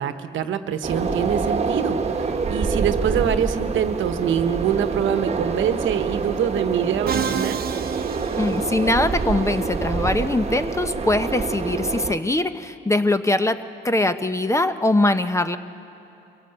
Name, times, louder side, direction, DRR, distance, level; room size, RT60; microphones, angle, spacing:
voice 1, 0.0-7.6, right 9 dB, 75° right, 10 dB, 1.1 m, -25 dB
sound 1, 0.8-12.1, right 4 dB, 30° right, 1.4 m, -26 dB
Musical instrument, 7.1-9.2, right 7 dB, 50° right, 0.9 m, -29 dB
voice 2, 8.4-13.6 13.8-15.6, left 2 dB, 15° left, 10 dB, 0.8 m, -22 dB
23.5 x 17.0 x 7.9 m, 2.7 s
cardioid pair, 90°, 20 cm